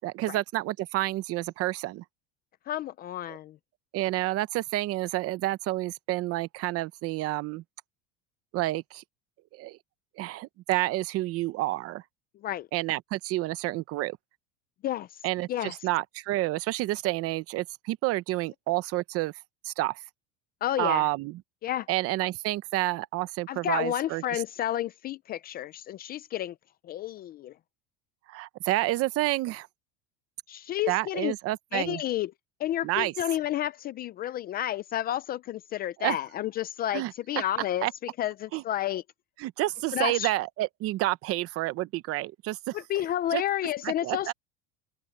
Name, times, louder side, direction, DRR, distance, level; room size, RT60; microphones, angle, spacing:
voice 1, 0.0-2.0 3.3-3.4 3.9-7.6 8.5-9.0 9.5-9.8 10.2-12.0 12.7-14.2 15.2-19.3 19.6-20.0 20.8-21.4 21.9-24.2 28.3-29.7 30.9-32.0 32.8-33.1 36.0-36.2 36.9-37.1 37.8-37.9 38.5-38.6 39.4-42.8 43.3-43.4 43.8-44.3, right 17 dB, 45° right, 0.9 m, -29 dB
voice 2, 2.7-3.6 12.3-12.7 14.8-15.8 20.6-21.1 21.6-21.9 23.5-26.6 26.8-27.6 30.5-31.3 31.7-32.3 32.6-39.0 39.9-40.3 42.7-44.3, left 12 dB, 30° left, 0.4 m, -31 dB
open air
cardioid pair, 160°, 34 cm